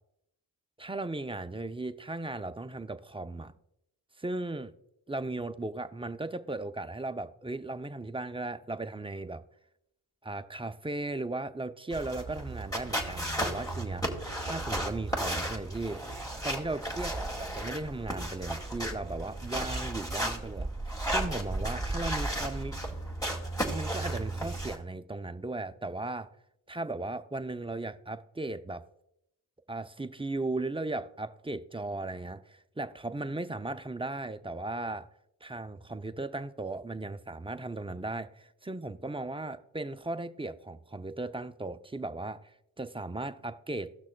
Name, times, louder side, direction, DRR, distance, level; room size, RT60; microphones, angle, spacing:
voice 1, 0.8-3.5 4.2-4.7 5.1-9.4 10.2-14.0 14.4-16.0 16.4-20.7 21.1-22.8 23.7-26.3 26.7-28.8 29.7-35.1 35.4-43.9, right 2 dB, 10° right, 0.4 m, -36 dB
sound 1, 11.9-24.8, right 1 dB, 5° left, 2.1 m, -34 dB
17.0 x 6.1 x 2.2 m
cardioid pair, 60°, 49 cm